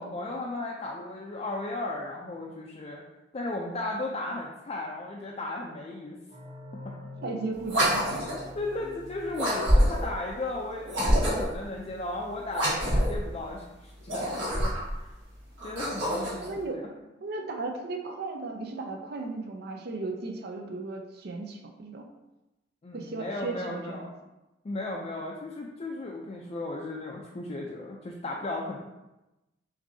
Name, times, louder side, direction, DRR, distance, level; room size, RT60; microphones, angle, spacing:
voice 1, 0.0-3.1 3.3-6.2 8.5-14.3 15.0-15.1 15.6-16.9 22.8-24.1 24.6-28.8, left 2 dB, 35° left, -2 dB, 0.4 m, -35 dB
sound 1, 6.3-10.8, left 2 dB, 35° right, 0.9 m, -47 dB
voice 2, 7.2-8.1 16.4-16.8 17.2-22.1 22.9-24.1, right 3 dB, 60° right, 2 dB, 0.5 m, -35 dB
sound 2, 7.6-8.5 9.3-10.1 10.9-11.6 12.5-13.2 14.0-14.9 15.6-16.5, equal, 90° right, 1.5 m, -26 dB
6.0 x 2.7 x 2.7 m, 1.0 s
head